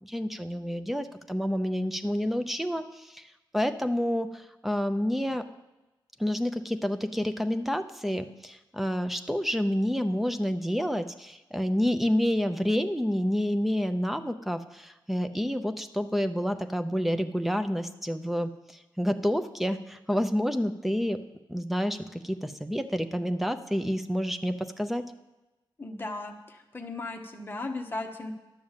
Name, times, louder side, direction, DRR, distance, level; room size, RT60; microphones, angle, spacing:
voice 1, 0.0-3.2 3.5-5.4 6.2-18.5 19.0-21.2 21.5-25.0, equal, ahead, 8 dB, 0.5 m, -29 dB
voice 2, 25.8-28.3, left 2 dB, 25° left, 3 dB, 1.1 m, -36 dB
11.5 x 6.4 x 7.3 m, 1.0 s
wide cardioid pair, 160°, 9 cm